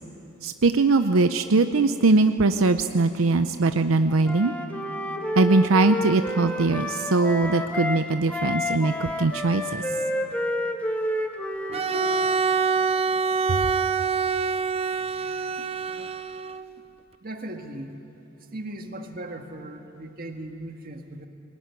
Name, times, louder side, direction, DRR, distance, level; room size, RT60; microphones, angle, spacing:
voice 1, 0.4-4.5 5.4-9.8 13.5-13.7, right 3 dB, 85° right, 9 dB, 0.7 m, -21 dB
Wind instrument woodwind instrument, 4.2-8.0 8.3-12.4, left 1 dB, 5° left, 1.4 m, -30 dB
Bowed string instrument, 11.7-16.7, right 5 dB, 30° right, 0.4 m, -25 dB
voice 2, 17.2-18.0 18.5-21.3, right 1 dB, 45° right, 5 dB, 1.7 m, -38 dB
21.5 x 19.5 x 9.5 m, 2.9 s
head